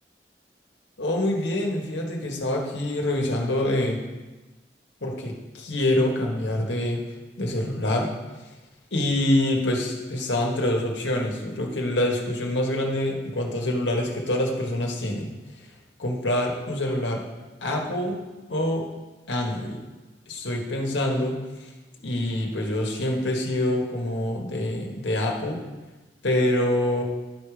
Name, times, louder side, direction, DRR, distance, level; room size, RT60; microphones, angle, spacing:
voice 1, 1.0-4.0 5.0-7.0 7.4-8.1 8.9-15.3 16.0-17.2 17.6-18.2 18.5-18.9 19.3-19.8 20.3-21.4 22.0-25.6 26.2-27.0, left 1 dB, 90° left, 1 dB, 1.6 m, -25 dB
11.5 x 5.0 x 5.1 m, 1.2 s
head